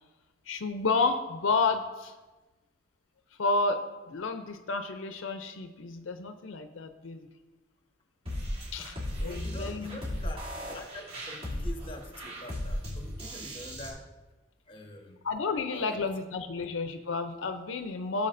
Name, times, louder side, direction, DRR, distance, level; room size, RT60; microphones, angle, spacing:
voice 1, 0.5-2.1 3.4-3.8 4.1-7.3 8.7-10.0 15.2-18.3, left 3 dB, 80° left, 8 dB, 0.5 m, -31 dB
sound 1, 8.3-13.9, equal, 30° right, 2.7 m, -36 dB
voice 2, 9.2-14.0 14.7-15.2 15.7-16.0, left 1 dB, 25° left, 3 dB, 1.2 m, -45 dB
14.5 x 7.1 x 2.6 m, 1.2 s
head